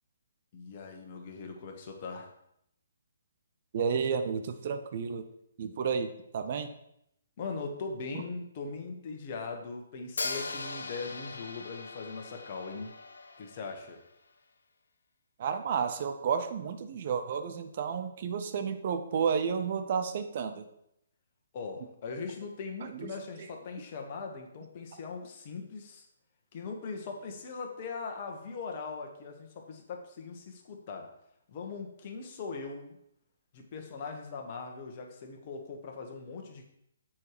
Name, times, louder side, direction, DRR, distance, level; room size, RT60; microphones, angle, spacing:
voice 1, 0.5-2.3 7.4-12.9 13.4-14.0 21.5-26.0 26.5-31.1 31.5-33.0 33.5-36.7, left 4 dB, 40° left, 3 dB, 1.3 m, -40 dB
voice 2, 3.7-5.2 5.6-6.7 15.4-20.6 22.9-23.1 24.9-25.0, right 6 dB, 50° right, 8 dB, 0.7 m, -31 dB
Hi-hat, 10.2-14.1, left 3 dB, 75° left, 0.8 m, -40 dB
7.3 x 4.7 x 4.9 m, 0.77 s
figure-of-eight pair, 140°, 0 cm